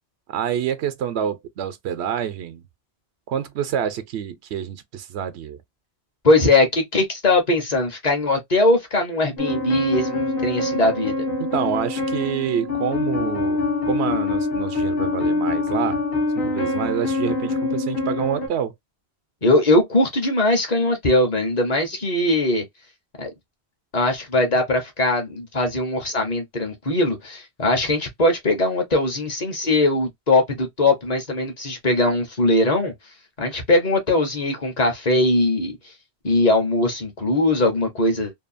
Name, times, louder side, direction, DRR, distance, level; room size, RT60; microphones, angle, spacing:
voice 1, 0.3-2.6 3.3-5.6 11.4-16.0 16.4-18.7, right 9 dB, 85° right, 0.9 m, -27 dB
voice 2, 6.2-11.3 19.4-22.6 23.2-23.3 23.9-32.9 33.4-35.8 36.2-38.3, left 2 dB, 45° left, 0.9 m, -20 dB
sound 1, 9.4-18.5, left 2 dB, 60° left, 1.0 m, -24 dB
2.7 x 2.3 x 2.5 m
omnidirectional pair, 1.1 m